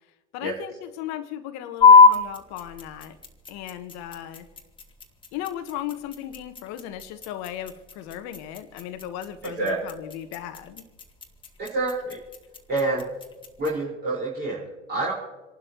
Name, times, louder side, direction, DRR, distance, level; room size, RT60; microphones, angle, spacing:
voice 1, 0.3-3.2 3.5-4.5 5.3-10.8, left 11 dB, 45° left, 9 dB, 1.3 m, -36 dB
sound 1, 1.8-13.8, left 5 dB, 15° left, 2.0 m, -23 dB
voice 2, 9.4-9.9 11.6-12.2 12.7-13.1 13.6-15.1, right 2 dB, 25° right, -6 dB, 5.0 m, -27 dB
28.5 x 12.0 x 3.1 m, 1.2 s
hypercardioid pair, 90°, 37 cm